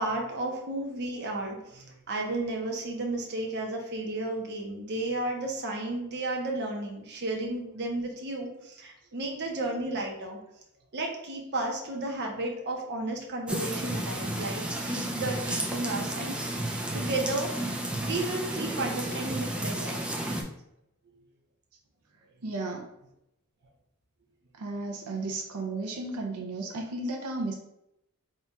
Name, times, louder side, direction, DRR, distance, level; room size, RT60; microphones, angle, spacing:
voice 1, 0.0-10.4 10.9-16.6 16.9-17.7 18.0-20.0 21.1-21.2, right 2 dB, 50° right, 0 dB, 0.8 m, -33 dB
sound 1, 13.5-20.4, right 1 dB, 5° right, 0.4 m, -32 dB
voice 2, 22.4-22.9 24.6-27.5, right 2 dB, 85° right, 1 dB, 0.6 m, -34 dB
3.7 x 2.4 x 4.1 m, 0.81 s
head